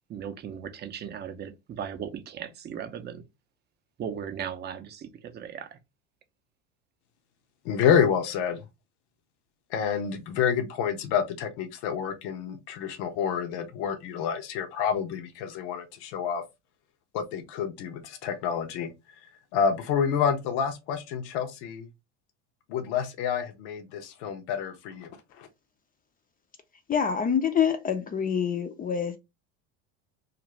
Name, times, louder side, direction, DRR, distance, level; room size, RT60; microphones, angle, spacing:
voice 1, 0.1-3.2 4.0-5.8, right 8 dB, 30° right, 0.5 m, -37 dB
voice 2, 7.6-8.6 9.7-16.4 17.1-18.9 19.5-21.9 22.7-25.1 25.4-25.5, left 7 dB, 75° left, 0.7 m, -28 dB
voice 3, 26.9-29.2, left 7 dB, 25° left, 0.4 m, -26 dB
2.5 x 2.5 x 3.0 m
supercardioid pair, 110°, 35 cm